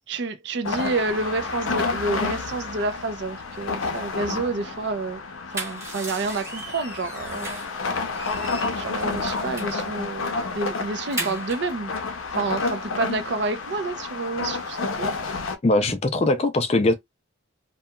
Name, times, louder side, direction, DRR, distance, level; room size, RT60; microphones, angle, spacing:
voice 1, 0.1-5.2 5.5-7.5 7.9-8.1 8.8-11.9 12.3-15.1 15.9-16.0, right 3 dB, 55° right, 0.4 m, -29 dB
sound 1, 0.6-15.6, left 4 dB, 85° left, 0.5 m, -30 dB
sound 2, 5.3-7.8 8.1-9.8 10.2-10.4 10.7-11.7, right 2 dB, 15° right, 0.9 m, -36 dB
voice 2, 15.6-16.9, left 2 dB, 30° left, 0.4 m, -21 dB
2.8 x 2.2 x 2.2 m
head